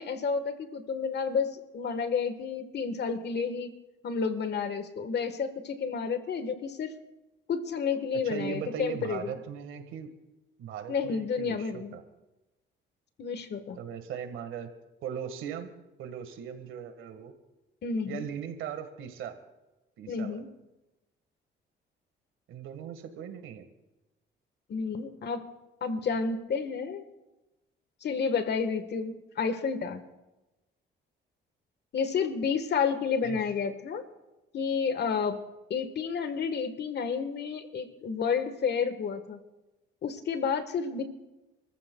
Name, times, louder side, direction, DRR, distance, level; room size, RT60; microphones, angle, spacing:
voice 1, 0.0-3.7 4.0-6.9 7.5-9.3 10.9-11.9 13.2-13.8 17.8-18.3 20.1-20.5 24.7-25.4 25.8-27.0 28.0-30.0 31.9-34.0 34.5-35.4 35.7-39.4 40.0-41.0, left 5 dB, 60° left, 10 dB, 1.4 m, -30 dB
voice 2, 8.2-10.1 10.6-12.0 13.8-14.7 15.0-15.7 16.0-17.3 18.1-19.4 20.0-20.4 22.5-23.7 33.2-33.4, right 8 dB, 85° right, 7 dB, 1.6 m, -39 dB
28.5 x 14.5 x 2.3 m, 1.0 s
cardioid pair, 90°, 20 cm